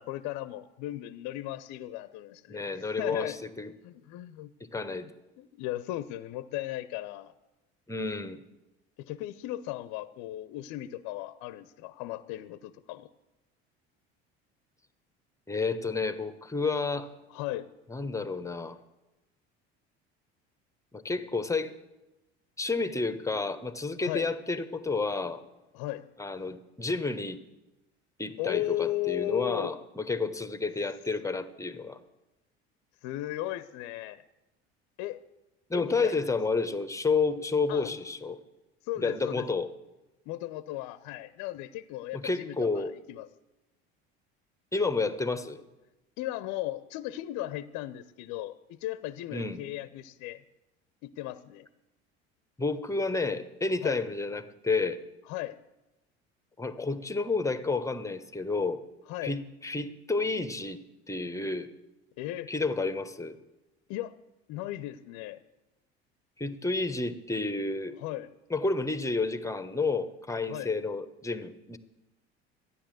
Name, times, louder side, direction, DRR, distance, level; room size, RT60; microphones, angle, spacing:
voice 1, 0.0-3.4 3.8-4.5 5.0-5.1 5.4-7.3 9.0-13.1 17.3-17.7 24.0-24.3 25.7-26.0 28.4-29.7 33.0-34.2 35.0-35.2 35.7-36.4 37.7-38.0 38.8-39.6 40.3-43.3 46.2-50.4 51.0-51.7 53.8-54.0 55.3-55.6 59.1-59.4 62.2-62.5 63.9-64.2 64.5-65.4 68.0-68.3 70.5-70.7, left 15 dB, 60° left, 14 dB, 0.8 m, -36 dB
voice 2, 2.5-3.7 4.6-5.1 7.9-8.4 15.5-17.1 17.9-18.8 20.9-21.7 22.6-25.4 26.2-27.4 28.2-32.0 35.7-38.4 39.0-39.7 42.1-42.9 44.7-45.6 49.3-49.6 52.6-55.0 56.6-58.8 59.2-60.8 61.1-61.7 62.5-63.4 66.4-67.9 68.5-71.8, left 3 dB, 10° left, 11 dB, 1.2 m, -30 dB
13.0 x 9.9 x 7.7 m, 1.0 s
hypercardioid pair, 70°, 32 cm